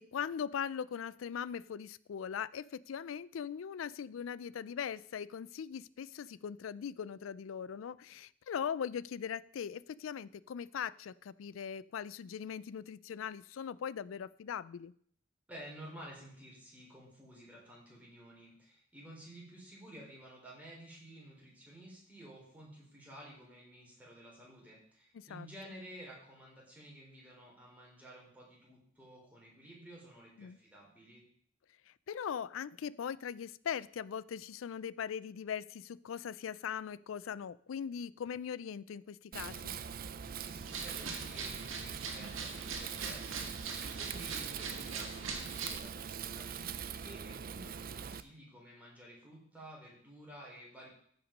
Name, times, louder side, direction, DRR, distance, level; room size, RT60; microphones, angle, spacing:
voice 1, 0.0-14.9 25.1-25.5 30.4-30.6 31.9-39.7, left 7 dB, 75° left, 19 dB, 0.4 m, -40 dB
voice 2, 15.5-31.2 40.4-50.9, right 1 dB, 10° right, -4 dB, 4.2 m, -52 dB
Wind, 39.3-48.2, right 7 dB, 50° right, 0.5 m, -43 dB
sound 1, 40.6-45.8, right 4 dB, 85° right, 1.8 m, -42 dB
15.0 x 5.8 x 5.2 m, 0.62 s
head